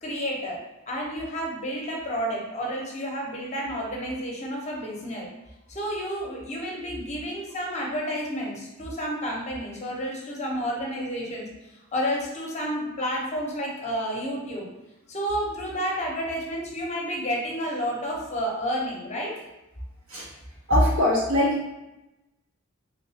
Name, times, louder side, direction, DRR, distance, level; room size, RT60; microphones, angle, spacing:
voice 1, 0.0-0.6 0.9-5.3 5.7-14.6 15.1-19.3, equal, 35° left, -2 dB, 0.7 m, -30 dB
voice 2, 20.7-21.7, left 1 dB, 85° right, -6 dB, 1.4 m, -23 dB
3.5 x 2.9 x 2.7 m, 0.96 s
head